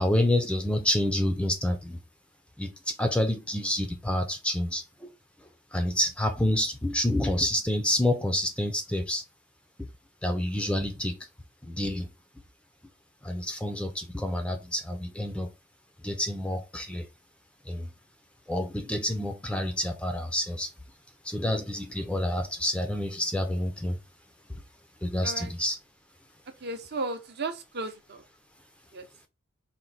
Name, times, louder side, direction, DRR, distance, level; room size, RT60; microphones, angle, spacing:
voice 1, 0.0-2.0 2.6-5.1 5.7-9.2 10.2-11.2 11.6-12.1 13.2-15.5 16.0-17.1 17.7-17.9 18.5-20.7 21.2-24.0 24.5-24.6 25.0-25.8, left 1 dB, 5° left, 0.5 m, -28 dB
voice 2, 26.6-28.2 28.9-29.1, right 3 dB, 50° right, 0.7 m, -34 dB
4.4 x 2.1 x 3.9 m
head